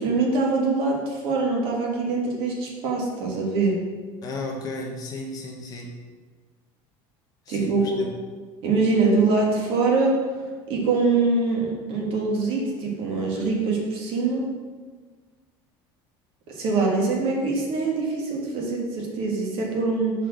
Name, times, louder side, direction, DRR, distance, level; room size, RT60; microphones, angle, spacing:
voice 1, 0.0-3.8 7.5-8.0 8.6-10.1 10.7-14.5 16.5-20.1, right 3 dB, 50° right, -1 dB, 1.7 m, -23 dB
voice 2, 4.2-5.9 7.5-8.1, left 2 dB, 35° left, 0 dB, 1.0 m, -34 dB
5.4 x 4.4 x 6.2 m, 1.5 s
cardioid pair, 155°, 11 cm